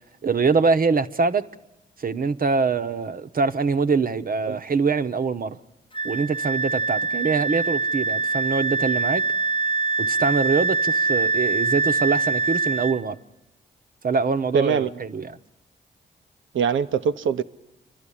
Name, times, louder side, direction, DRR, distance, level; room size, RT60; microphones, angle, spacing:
voice 1, 0.2-1.5 2.0-5.6 6.0-9.2 10.0-13.2 14.0-15.4, right 4 dB, 45° right, 0.9 m, -24 dB
Wind instrument woodwind instrument, 5.9-13.0, right 4 dB, 25° left, 0.7 m, -24 dB
voice 2, 14.5-14.9 16.5-17.4, right 6 dB, 75° right, 0.7 m, -22 dB
29.0 x 12.0 x 10.0 m
supercardioid pair, 40°, 20 cm